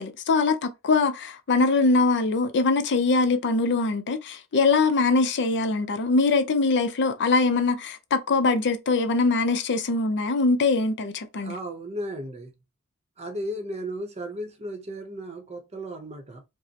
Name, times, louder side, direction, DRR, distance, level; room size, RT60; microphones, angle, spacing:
voice 1, 0.0-11.6, left 3 dB, 50° left, 0.5 m, -22 dB
voice 2, 11.4-12.5 13.2-16.4, right 1 dB, 30° right, 0.7 m, -35 dB
5.2 x 2.0 x 2.8 m
head